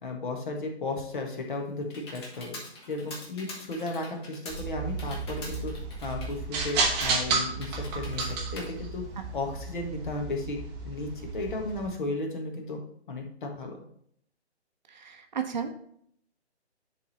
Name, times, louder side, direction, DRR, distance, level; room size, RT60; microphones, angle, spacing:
voice 1, 0.0-2.6 2.9-5.7 6.0-9.0 9.3-10.6 10.8-12.8 13.1-13.8, left 2 dB, 45° left, 2 dB, 1.7 m, -34 dB
Computer keyboard, 1.1-9.7, left 1 dB, 25° left, 1.4 m, -45 dB
sound 1, 4.5-11.9, right 4 dB, 10° right, 0.9 m, -32 dB
voice 2, 14.9-15.8, right 7 dB, 40° right, 6 dB, 0.9 m, -33 dB
10.5 x 3.6 x 4.2 m, 0.67 s
figure-of-eight pair, 145°, 34 cm